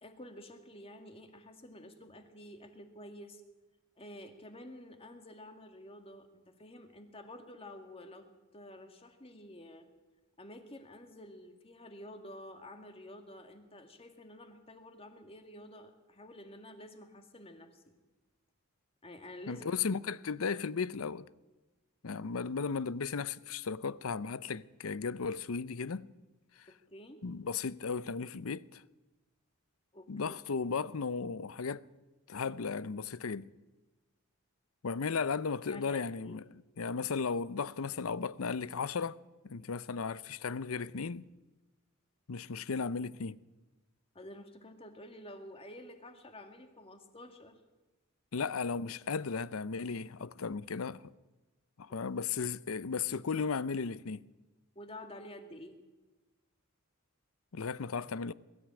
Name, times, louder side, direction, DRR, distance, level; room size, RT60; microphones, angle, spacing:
voice 1, 0.0-3.4 4.0-8.3 8.5-9.9 10.4-17.9 19.0-19.6 26.7-27.2 29.9-30.3 35.7-36.4 44.1-47.6 54.8-55.8, left 1 dB, 30° left, 2.1 m, -50 dB
voice 2, 19.5-21.3 22.0-26.1 27.2-28.8 30.1-31.8 32.3-33.5 34.8-39.2 39.4-41.3 42.3-43.4 48.3-51.1 51.8-54.2 57.5-58.3, left 5 dB, 90° left, 0.6 m, -35 dB
21.5 x 13.5 x 8.9 m
head